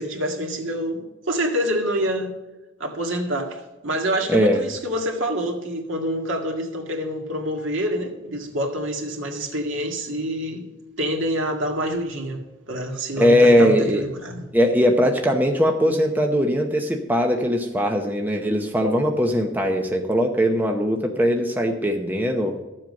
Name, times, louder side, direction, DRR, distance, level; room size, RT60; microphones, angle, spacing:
voice 1, 0.0-2.3 2.8-10.6 11.0-14.4, equal, 70° right, 2 dB, 2.0 m, -27 dB
voice 2, 4.3-4.6 13.2-14.0 14.5-22.5, equal, 10° right, 2 dB, 0.8 m, -20 dB
13.0 x 7.6 x 5.3 m, 1.1 s
head